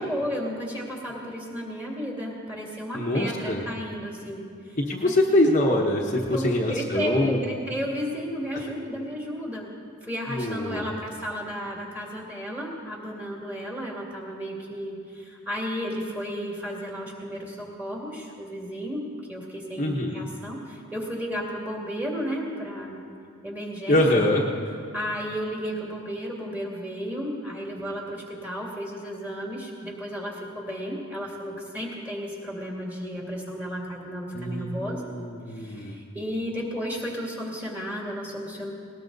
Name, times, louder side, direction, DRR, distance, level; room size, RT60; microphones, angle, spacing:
voice 1, 0.0-4.8 5.0-5.1 6.3-9.7 10.0-19.0 19.3-23.0 23.4-24.3 24.9-35.0 35.5-38.7, equal, 10° right, -2 dB, 2.3 m, -33 dB
voice 2, 2.9-3.6 4.8-7.4 10.3-11.0 19.8-20.3 23.9-24.4 34.3-35.9, left 1 dB, 35° left, -1 dB, 1.0 m, -24 dB
19.5 x 19.0 x 4.0 m, 2.4 s
head